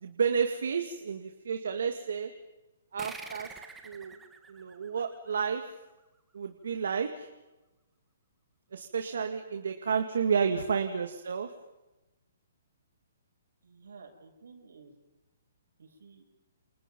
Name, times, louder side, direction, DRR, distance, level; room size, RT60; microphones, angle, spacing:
voice 1, 0.0-2.3 2.9-3.5 3.8-4.2 4.5-5.7 6.3-7.3 8.7-11.5, right 6 dB, 75° right, 6 dB, 2.3 m, -31 dB
sound 1, 3.0-6.0, right 4 dB, 5° right, 1.7 m, -47 dB
voice 2, 13.6-14.9 15.8-16.2, right 5 dB, 90° right, 3 dB, 7.9 m, -51 dB
29.5 x 28.5 x 5.5 m, 1.0 s
hypercardioid pair, 170°, 0 cm